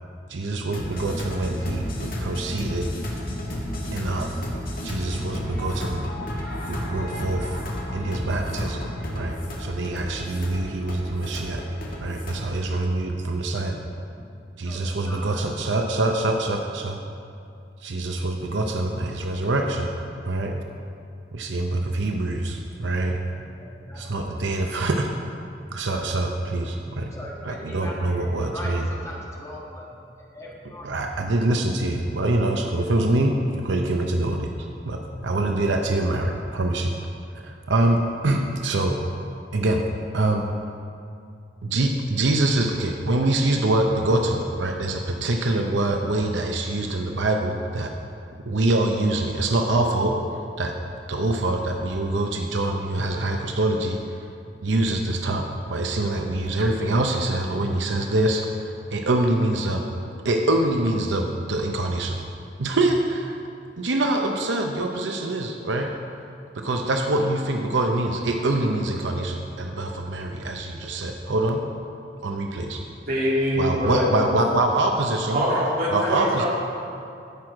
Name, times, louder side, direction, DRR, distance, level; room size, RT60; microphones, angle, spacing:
voice 1, 0.3-2.9 3.9-4.3 4.8-6.0 6.7-7.6 7.9-8.8 9.1-11.6 12.0-13.8 14.6-17.0 17.8-19.9 20.2-20.5 21.3-23.2 23.9-25.1 25.7-27.1 27.5-28.8 30.8-36.9 37.4-38.9 39.5-39.8 40.1-40.4 41.6-47.9 48.5-50.2 50.6-50.7 51.1-54.0 54.6-59.8 60.2-62.2 62.6-63.4 63.8-65.9 66.5-71.6 72.2-72.8 73.5-75.4 75.9-76.5, right 2 dB, 85° right, 3 dB, 0.7 m, -24 dB
sound 1, 0.7-12.4, left 1 dB, 55° left, 1.9 m, -32 dB
voice 2, 14.6-15.5 23.3-24.3 26.6-31.0 73.8-74.3 74.9-75.1 76.0-76.5, equal, 15° left, -4 dB, 1.6 m, -39 dB
voice 3, 73.1-74.1 75.3-76.5, equal, 55° right, -6 dB, 3.0 m, -23 dB
15.0 x 6.2 x 4.8 m, 2.5 s
head